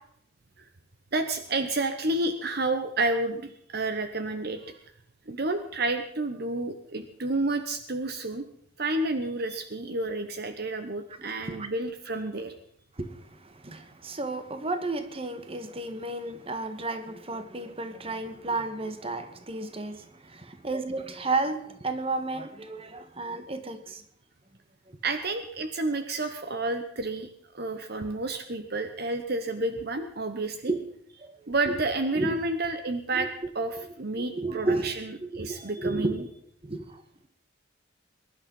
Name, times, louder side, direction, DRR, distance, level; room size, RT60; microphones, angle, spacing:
voice 1, 1.1-4.8 5.3-8.4 8.8-12.5 25.0-30.7 31.5-33.3 33.5-36.2, right 2 dB, 55° right, 1.0 m, -30 dB
voice 2, 11.2-11.7 12.9-24.0 24.9-25.0 30.7-30.8 31.2-31.8 32.1-32.4 33.1-33.3 34.1-34.9 35.2-36.2 36.6-37.0, right 2 dB, 30° right, 1.5 m, -33 dB
22.0 x 11.5 x 5.4 m
head